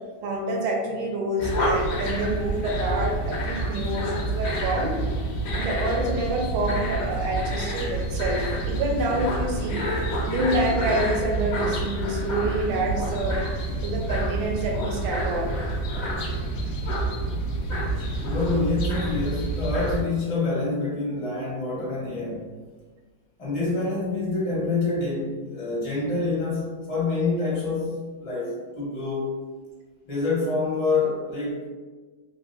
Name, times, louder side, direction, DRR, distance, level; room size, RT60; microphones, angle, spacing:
voice 1, 0.2-5.0 5.5-9.8 10.3-13.4 13.8-15.6, right 1 dB, 80° right, 0 dB, 1.4 m, -27 dB
sound 1, 1.4-20.0, right 2 dB, 70° left, 0.8 m, -28 dB
voice 2, 18.2-22.5 23.4-29.4 30.1-31.7, left 3 dB, 40° left, -6 dB, 0.5 m, -27 dB
3.4 x 2.5 x 2.4 m, 1.4 s
omnidirectional pair, 2.2 m